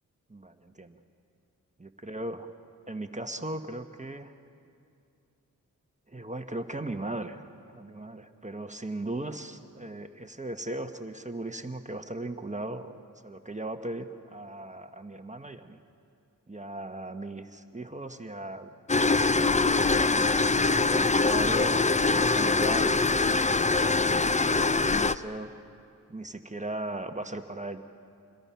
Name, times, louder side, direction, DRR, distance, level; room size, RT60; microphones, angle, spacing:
voice 1, 0.3-1.0 1.8-2.5 2.9-4.3 6.1-13.0 13.2-15.8 16.5-20.1 20.8-23.0 23.3-23.9 24.5-25.5 26.1-27.8, right 2 dB, 20° right, 7 dB, 1.2 m, -38 dB
sound 1, 18.9-25.2, left 3 dB, 20° left, 0.6 m, -23 dB
27.5 x 21.5 x 5.8 m, 2.5 s
cardioid pair, 50°, 35 cm